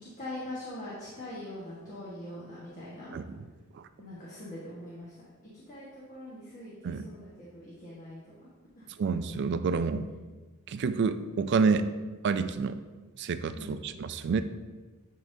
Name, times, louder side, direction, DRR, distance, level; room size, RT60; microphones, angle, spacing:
voice 1, 0.0-3.2 4.0-5.1 5.5-8.5 8.8-8.9 13.5-13.8, left 1 dB, 35° left, -8 dB, 1.4 m, -42 dB
voice 2, 3.1-3.4 3.7-3.8 6.8-7.0 9.0-10.1 10.7-11.9 12.2-12.8 13.2-14.4, right 5 dB, 55° right, 11 dB, 0.3 m, -28 dB
10.5 x 3.7 x 2.7 m, 1.3 s
head